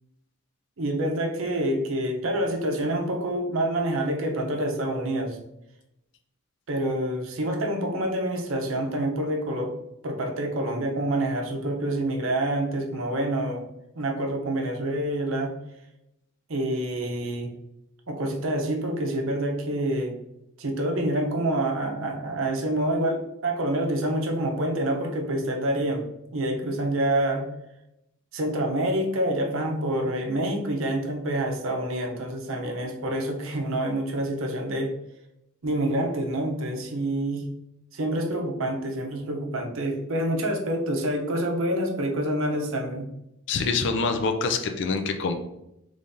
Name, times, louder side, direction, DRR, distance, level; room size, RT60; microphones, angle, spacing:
voice 1, 0.8-5.4 6.7-9.7 10.0-13.7 14.0-15.5 16.5-17.5 18.1-20.2 20.6-26.1 26.3-27.5 28.3-34.9 35.6-37.5 37.9-43.1, right 1 dB, 65° right, 3 dB, 0.7 m, -27 dB
voice 2, 43.5-45.3, left 4 dB, 55° left, 6 dB, 0.4 m, -25 dB
3.7 x 3.2 x 2.6 m, 0.85 s
head